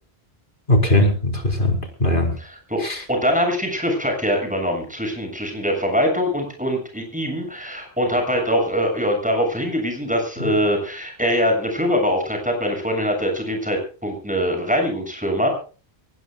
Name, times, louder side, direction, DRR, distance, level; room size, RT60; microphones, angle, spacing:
voice 1, 0.7-2.3 2.8-3.0, left 1 dB, 55° left, 3 dB, 4.8 m, -19 dB
voice 2, 2.4-2.8 3.1-15.5, equal, 5° right, 3 dB, 7.3 m, -23 dB
24.0 x 19.0 x 2.4 m, 0.37 s
omnidirectional pair, 1.0 m